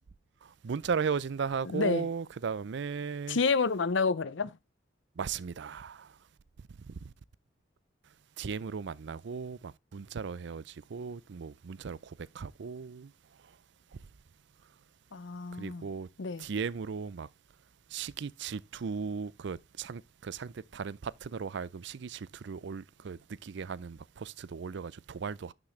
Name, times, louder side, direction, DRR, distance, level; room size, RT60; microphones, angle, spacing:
voice 1, 0.4-3.4 5.2-6.2 6.8-7.1 8.4-13.1 13.4-13.5 15.5-16.1 16.4-17.3 17.9-25.5, right 5 dB, 65° right, 0.5 m, -37 dB
voice 2, 1.6-2.1 3.3-4.6 15.1-15.9 16.2-16.5, left 4 dB, 75° left, 0.7 m, -29 dB
11.5 x 6.1 x 3.2 m
head